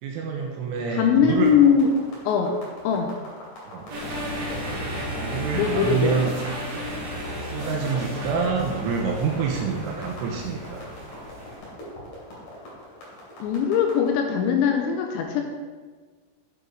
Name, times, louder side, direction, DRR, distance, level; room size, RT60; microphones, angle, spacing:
voice 1, 0.0-1.5 3.7-3.9 5.2-6.4 7.4-10.8, right 5 dB, 80° right, 1 dB, 3.2 m, -27 dB
voice 2, 0.9-1.9 2.3-2.5 2.8-3.1 5.5-6.2 13.4-15.4, left 7 dB, 85° left, 4 dB, 2.7 m, -20 dB
sound 1, 1.2-14.1, left 1 dB, 50° left, 4.0 m, -42 dB
sound 2, 3.9-11.6, equal, 65° right, 1.7 m, -33 dB
8.2 x 7.8 x 4.7 m, 1.4 s
omnidirectional pair, 5.9 m